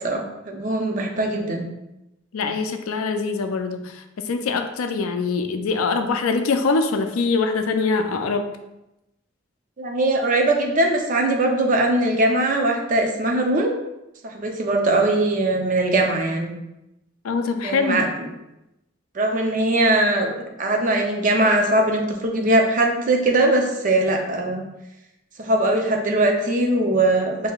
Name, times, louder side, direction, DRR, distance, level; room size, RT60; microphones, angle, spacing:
voice 1, 0.0-1.7 9.8-13.7 14.2-16.5 17.6-18.3 19.1-24.6 25.4-27.5, right 2 dB, 40° right, 2 dB, 0.5 m, -21 dB
voice 2, 2.3-8.5 17.2-18.0, left 4 dB, 90° left, 8 dB, 0.4 m, -23 dB
5.5 x 2.7 x 2.3 m, 0.92 s
head